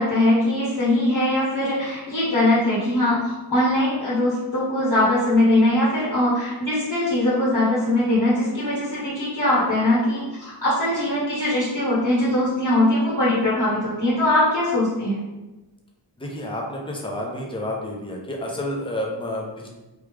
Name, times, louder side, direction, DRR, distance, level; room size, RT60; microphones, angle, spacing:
voice 1, 0.0-15.2, left 1 dB, 50° left, -8 dB, 1.3 m, -21 dB
voice 2, 16.2-19.7, left 1 dB, 10° left, -2 dB, 0.6 m, -30 dB
3.3 x 2.3 x 3.4 m, 1.1 s
wide cardioid pair, 80°, 47 cm